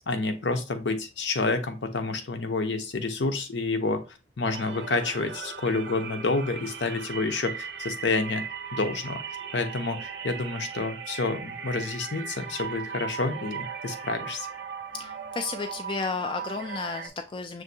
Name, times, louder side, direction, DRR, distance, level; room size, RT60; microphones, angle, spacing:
voice 1, 0.1-8.5 8.7-9.2 9.5-14.5, left 3 dB, 70° left, 7 dB, 0.7 m, -29 dB
sound 1, 4.4-17.1, right 7 dB, 65° right, 0.5 m, -38 dB
voice 2, 15.0-17.6, left 4 dB, 25° left, 5 dB, 0.3 m, -33 dB
6.2 x 2.6 x 2.7 m, 0.30 s
head